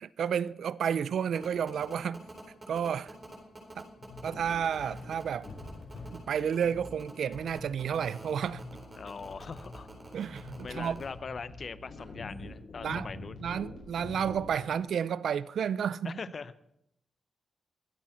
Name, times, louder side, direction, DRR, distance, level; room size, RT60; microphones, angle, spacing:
voice 1, 0.0-2.2 2.7-3.1 3.8-3.9 4.2-5.5 6.1-8.6 10.1-11.0 12.8-13.1 13.4-16.2, right 8 dB, 80° right, 0.4 m, -31 dB
sound 1, 1.3-11.0, right 2 dB, 25° right, 4.0 m, -48 dB
sound 2, 4.0-14.7, left 2 dB, 75° left, 5.2 m, -46 dB
voice 2, 9.0-9.9 10.6-13.4 16.0-16.5, left 5 dB, 45° left, 0.6 m, -41 dB
22.5 x 8.5 x 4.4 m
cardioid pair, 110°, 0 cm